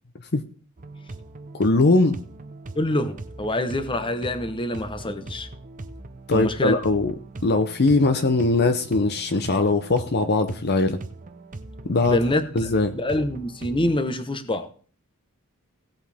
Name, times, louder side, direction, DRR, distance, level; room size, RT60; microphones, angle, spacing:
sound 1, 0.8-14.1, right 2 dB, 35° right, 0.7 m, -40 dB
voice 1, 1.5-2.2 6.3-7.1 7.4-11.0 11.8-12.2 12.5-12.9, left 3 dB, 50° left, 0.8 m, -20 dB
voice 2, 2.7-5.5 6.3-6.8 12.0-14.7, left 1 dB, 25° left, 1.0 m, -26 dB
17.0 x 7.9 x 3.5 m
head